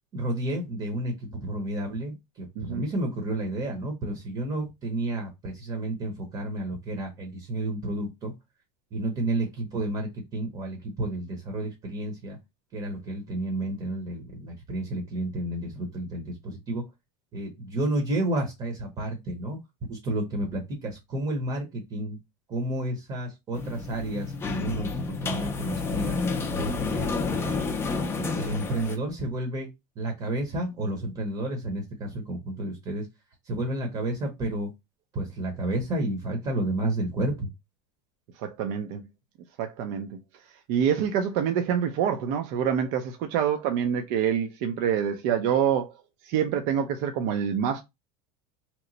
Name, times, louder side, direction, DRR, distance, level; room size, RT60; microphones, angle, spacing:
voice 1, 0.1-8.3 8.9-12.4 12.7-16.8 17.3-19.6 19.9-22.2 22.5-26.2 26.6-27.6 28.1-29.7 30.0-33.1 33.5-34.7 35.1-37.5, right 1 dB, 25° right, 0.8 m, -31 dB
voice 2, 2.6-2.9 38.4-39.0 39.6-40.2 40.7-45.9 46.2-47.8, right 8 dB, 55° right, 0.5 m, -26 dB
sound 1, 23.5-29.0, left 4 dB, 15° left, 0.4 m, -30 dB
2.9 x 2.1 x 3.8 m
supercardioid pair, 155°, 17 cm